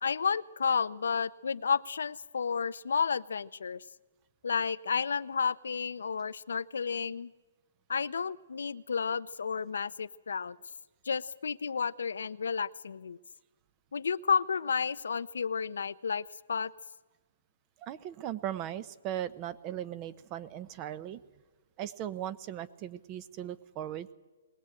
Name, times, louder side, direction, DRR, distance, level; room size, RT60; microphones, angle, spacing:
voice 1, 0.0-3.8 4.4-7.3 7.9-10.6 11.0-13.2 13.9-16.7, left 6 dB, 85° left, 14 dB, 0.7 m, -31 dB
voice 2, 17.8-21.2 21.8-24.1, right 11 dB, 25° right, 15 dB, 0.8 m, -38 dB
21.0 x 18.5 x 8.8 m, 1.3 s
hypercardioid pair, 155°, 0 cm